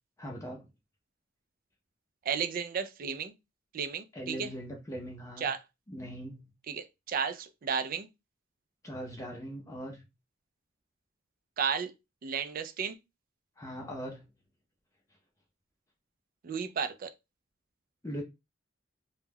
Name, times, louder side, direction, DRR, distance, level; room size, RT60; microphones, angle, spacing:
voice 1, 0.2-0.6 4.1-5.5 5.9-6.5 8.8-10.0 13.6-14.3 18.0-18.2, equal, 15° left, 0.5 m, -40 dB
voice 2, 2.3-3.3 3.7-4.5 5.4-5.6 6.7-8.1 11.6-11.9 12.2-13.0 16.4-17.1, right 6 dB, 45° right, 0.3 m, -33 dB
2.2 x 2.1 x 3.2 m
head